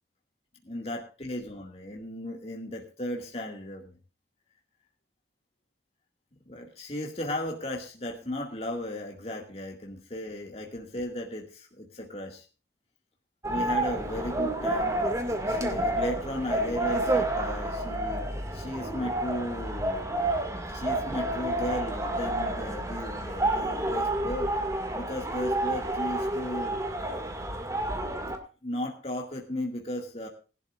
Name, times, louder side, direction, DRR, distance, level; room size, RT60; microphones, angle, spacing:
voice 1, 0.6-3.9 6.5-12.4 13.4-15.0 15.5-20.1 20.7-24.5 24.9-26.8 28.6-30.3, left 1 dB, 35° left, 0 dB, 2.1 m, -35 dB
sound 1, 13.4-28.4, right 1 dB, 20° right, 2.1 m, -29 dB
20.5 x 12.0 x 2.5 m, 0.34 s
head